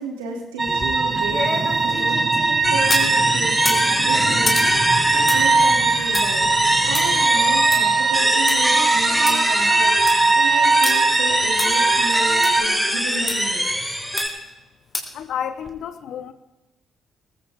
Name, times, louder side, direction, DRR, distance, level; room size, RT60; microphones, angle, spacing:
voice 1, 0.0-13.6, right 3 dB, 85° right, 1 dB, 2.8 m, -33 dB
sound 1, 0.6-3.1 3.5-8.6 8.9-9.0 9.3-9.4 9.8-10.2 10.8-10.9 11.6-11.7 12.4-12.5 13.3-13.4 14.2-14.5 14.9-15.2 15.6-15.7, left 2 dB, 35° left, 3.3 m, -30 dB
sound 2, 0.6-12.6, right 3 dB, 35° right, 1.9 m, -20 dB
sound 3, 2.6-14.3, equal, ahead, 5.6 m, -24 dB
voice 2, 15.1-16.3, left 9 dB, 65° left, 13 dB, 1.0 m, -30 dB
19.0 x 15.5 x 3.7 m, 1.0 s
hypercardioid pair, 45°, 0 cm